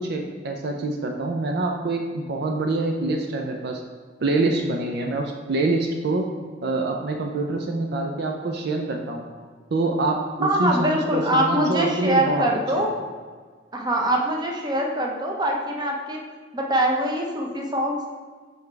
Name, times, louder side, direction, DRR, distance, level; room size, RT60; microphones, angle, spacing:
voice 1, 0.0-3.8 4.2-6.3 6.6-9.2 9.7-12.5 12.8-12.9, right 2 dB, 60° right, 3 dB, 0.5 m, -25 dB
voice 2, 10.4-12.9 13.7-16.2 16.5-18.1, right 1 dB, 20° right, 0 dB, 0.8 m, -23 dB
7.0 x 4.7 x 3.3 m, 1.5 s
head